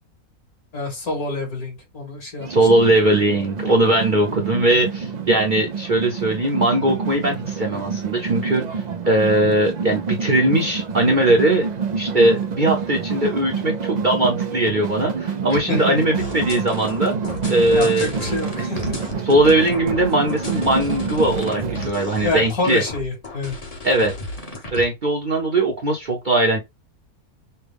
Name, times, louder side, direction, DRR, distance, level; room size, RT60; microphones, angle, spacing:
voice 1, 0.7-2.5 15.5-16.0 17.7-19.1 22.2-23.6, left 2 dB, 70° left, 3.0 m, -27 dB
sound 1, 2.4-21.9, right 6 dB, 70° right, 0.4 m, -28 dB
voice 2, 2.5-11.7 12.0-17.1 17.5-18.6 19.2-22.8 23.8-24.1 24.7-26.6, right 1 dB, 40° right, 0.8 m, -20 dB
sound 2, 16.2-24.8, left 2 dB, 30° left, 0.9 m, -34 dB
5.7 x 2.2 x 3.4 m
omnidirectional pair, 1.6 m